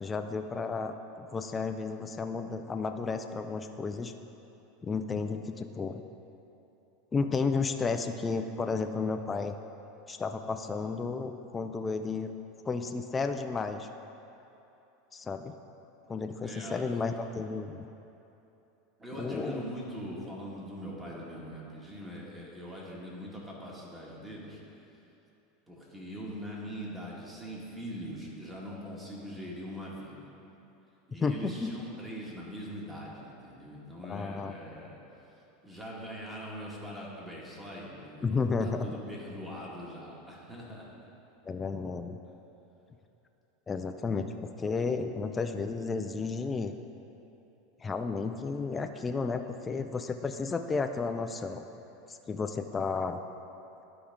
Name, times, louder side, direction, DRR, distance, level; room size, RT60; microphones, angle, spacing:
voice 1, 0.0-4.1 4.8-6.0 7.1-9.6 10.1-12.3 12.6-13.9 15.1-15.5 16.1-17.8 19.2-19.7 31.2-31.7 34.1-34.5 38.2-38.9 41.5-42.2 43.7-46.7 47.8-51.6 52.1-53.2, left 4 dB, 20° left, 6 dB, 0.3 m, -32 dB
voice 2, 16.4-16.8 19.0-24.6 25.7-30.3 31.1-35.0 35.6-40.9 45.1-45.2, equal, 15° right, -4 dB, 1.7 m, -42 dB
12.0 x 4.9 x 3.6 m, 2.9 s
supercardioid pair, 130°, 0 cm